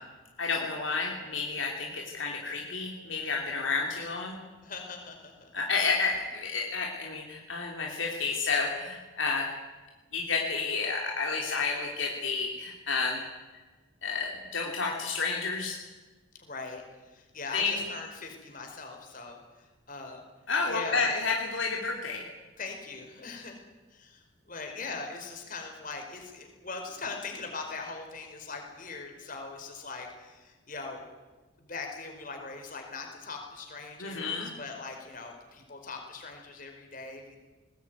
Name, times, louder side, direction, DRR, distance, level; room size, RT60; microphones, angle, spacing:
voice 1, 0.4-4.4 5.5-9.5 10.1-13.2 14.0-15.8 17.5-17.8 20.5-22.2 34.0-34.5, left 4 dB, 65° left, -1 dB, 3.0 m, -30 dB
voice 2, 4.6-5.5 16.3-20.2 20.6-21.1 22.6-23.6 23.9-31.1 31.6-37.4, left 4 dB, 40° left, 3 dB, 4.8 m, -41 dB
20.5 x 19.5 x 9.5 m, 1.3 s
head